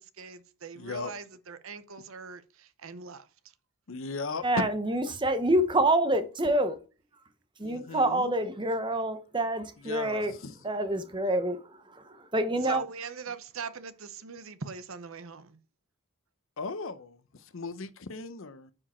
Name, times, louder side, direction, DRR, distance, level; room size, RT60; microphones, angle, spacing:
voice 1, 0.0-3.3 12.6-15.6, right 5 dB, 70° right, 0.8 m, -41 dB
voice 2, 0.7-1.1 3.9-4.7 7.6-8.3 9.8-10.6 16.6-18.7, left 3 dB, 65° left, 0.7 m, -37 dB
voice 3, 4.4-6.8 7.6-10.3 10.6-12.8, right 1 dB, 20° right, 0.9 m, -27 dB
9.8 x 4.9 x 4.3 m
head